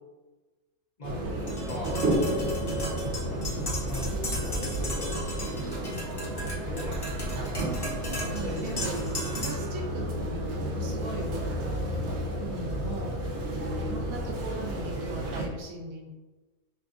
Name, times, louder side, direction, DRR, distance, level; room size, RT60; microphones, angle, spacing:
voice 1, 1.0-1.3 1.6-2.1 2.4-4.2 4.5-5.2 6.7-7.0 8.0-8.8, left 2 dB, 45° left, -4 dB, 0.6 m, -40 dB
sound 1, 1.0-15.5, right 1 dB, 60° right, 0.9 m, -32 dB
Tap, 1.5-9.7, left 1 dB, 20° left, 0.9 m, -35 dB
voice 2, 5.8-6.7 8.1-8.8 9.3-13.2 13.5-16.1, right 2 dB, 75° right, -1 dB, 1.2 m, -40 dB
5.8 x 2.5 x 2.5 m, 1.2 s
omnidirectional pair, 1.5 m